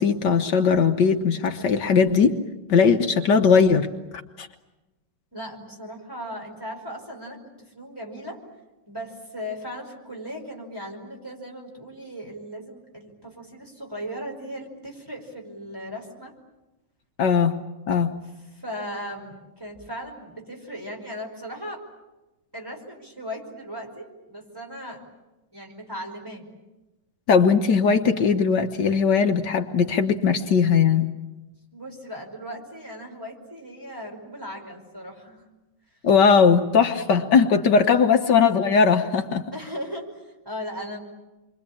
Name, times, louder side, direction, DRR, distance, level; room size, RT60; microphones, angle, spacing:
voice 1, 0.0-2.4 2.7-3.9 4.4-4.5 17.2-17.6 17.9-18.1 27.3-31.1 36.0-39.4, left 6 dB, 70° left, 5 dB, 1.7 m, -19 dB
voice 2, 5.3-8.4 8.9-16.3 18.5-21.9 22.5-25.0 25.5-26.4 31.7-35.4 39.5-41.0, equal, 10° right, 0 dB, 5.1 m, -37 dB
28.0 x 24.0 x 8.6 m, 1.1 s
omnidirectional pair, 2.0 m